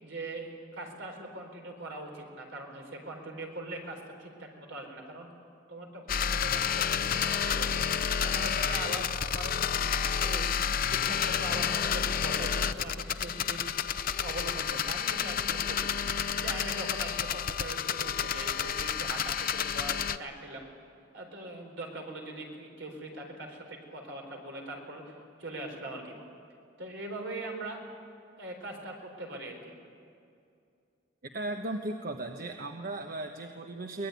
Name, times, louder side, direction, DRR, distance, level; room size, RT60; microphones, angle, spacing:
voice 1, 0.0-5.3 5.7-7.8 8.2-9.9 10.1-15.9 16.3-20.7 21.1-26.2 26.8-27.8 28.4-29.8, right 1 dB, 70° right, 2 dB, 4.6 m, -41 dB
sound 1, 6.1-20.2, left 7 dB, 50° left, 0.7 m, -30 dB
voice 2, 31.3-34.1, right 2 dB, 50° right, 4 dB, 1.2 m, -36 dB
23.0 x 20.0 x 9.4 m, 2.4 s
head